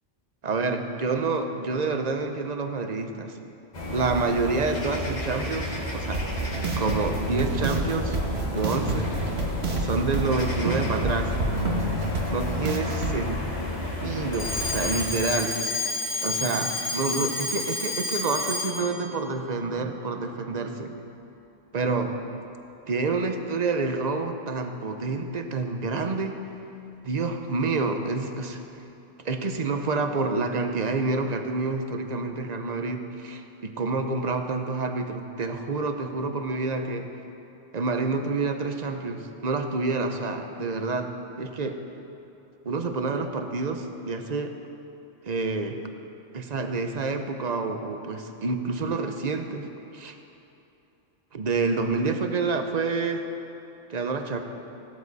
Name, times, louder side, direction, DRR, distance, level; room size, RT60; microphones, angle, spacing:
voice 1, 0.4-3.4 3.9-6.3 6.8-8.2 8.5-9.1 9.8-11.3 12.3-13.4 14.0-15.6 16.2-21.0 21.7-22.2 22.9-26.3 27.0-28.6 29.2-37.1 37.7-41.1 41.4-41.8 42.6-44.6 45.2-45.8 46.3-50.1 51.3-53.3 53.9-54.4, right 3 dB, 40° right, 6 dB, 0.8 m, -28 dB
sound 1, 3.7-15.0, left 1 dB, 35° left, 1.5 m, -32 dB
sound 2, 6.1-13.2, right 2 dB, 60° right, 1.5 m, -29 dB
Alarm, 14.3-19.0, left 3 dB, 15° left, 1.5 m, -30 dB
16.5 x 12.5 x 4.1 m, 3.0 s
omnidirectional pair, 1.3 m